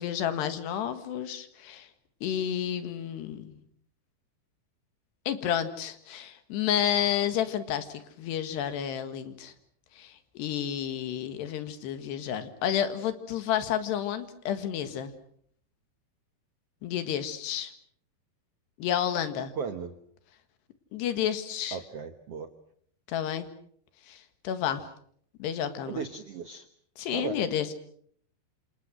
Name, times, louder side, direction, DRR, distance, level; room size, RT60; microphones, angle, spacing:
voice 1, 0.0-1.9 2.2-3.6 5.3-9.5 10.0-15.1 16.8-17.7 18.8-19.5 20.9-21.8 23.1-23.5 24.1-24.9 25.4-26.1 27.0-27.7, left 10 dB, 85° left, 10 dB, 3.9 m, -30 dB
voice 2, 19.5-19.9 21.7-22.5 25.9-26.7 27.1-27.4, right 6 dB, 75° right, 9 dB, 1.4 m, -36 dB
28.0 x 28.0 x 6.3 m, 0.64 s
omnidirectional pair, 4.7 m